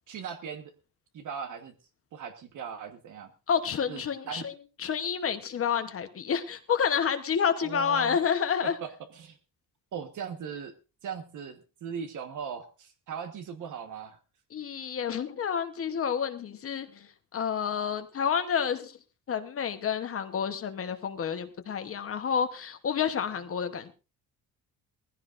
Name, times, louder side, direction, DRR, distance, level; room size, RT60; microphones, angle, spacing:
voice 1, 0.1-0.7 1.1-1.7 2.1-3.3 3.9-4.5 7.6-8.2 8.6-9.4 9.9-10.7 11.0-14.2, right 7 dB, 55° right, 7 dB, 1.4 m, -39 dB
voice 2, 3.5-4.5 4.8-8.7 14.5-19.0 19.3-23.9, left 7 dB, 40° left, 8 dB, 1.0 m, -29 dB
20.5 x 15.5 x 2.6 m, 0.31 s
cardioid pair, 170°, 36 cm